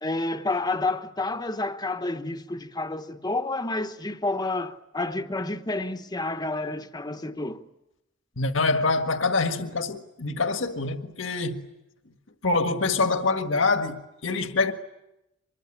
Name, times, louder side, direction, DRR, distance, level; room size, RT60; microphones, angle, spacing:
voice 1, 0.0-7.6, left 2 dB, 20° left, 1.1 m, -29 dB
voice 2, 8.4-11.7 12.4-14.7, left 3 dB, 75° left, 1.7 m, -25 dB
25.0 x 22.0 x 10.0 m
head